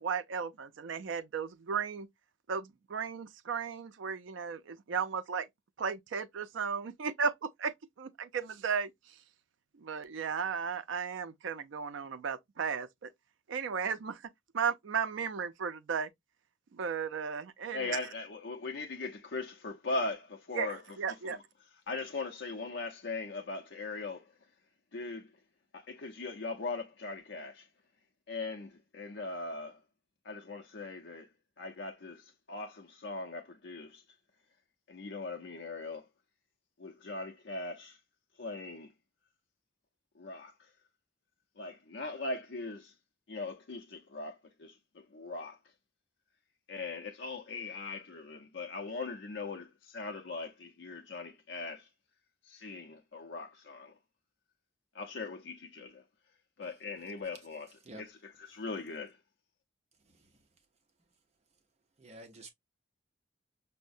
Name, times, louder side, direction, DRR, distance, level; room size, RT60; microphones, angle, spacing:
voice 1, 0.0-2.1 2.5-5.5 5.8-8.9 9.8-13.1 13.5-14.2 14.5-16.1 16.7-18.0 20.5-21.4, right 6 dB, 70° right, 0.4 m, -35 dB
voice 2, 17.7-21.4 21.9-24.3 24.9-25.3 25.7-27.7 28.3-29.8 30.2-31.3 31.6-34.0 34.9-36.1 36.8-38.0 38.4-38.9 40.2-40.7 41.6-42.9 43.3-45.6 46.7-51.9 52.4-53.9 54.9-56.0 56.6-57.7 58.0-58.1 58.5-59.2, left 3 dB, 65° left, 0.6 m, -40 dB
voice 3, 60.0-60.6 62.0-62.5, right 1 dB, 35° right, 0.6 m, -51 dB
5.4 x 2.0 x 2.5 m
head